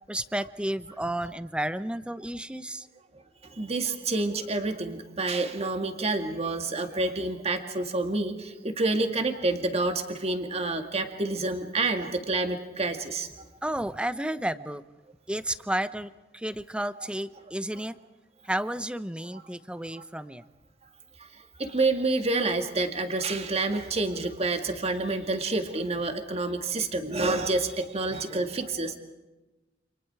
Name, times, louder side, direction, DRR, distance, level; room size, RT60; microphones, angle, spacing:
voice 1, 0.1-2.9 13.6-14.8 15.3-17.9 18.4-20.4, right 1 dB, 5° right, 13 dB, 0.8 m, -32 dB
voice 2, 3.6-13.3 19.3-19.4 21.6-29.0, right 2 dB, 35° right, 6 dB, 2.2 m, -28 dB
29.0 x 27.5 x 4.8 m, 1.1 s
head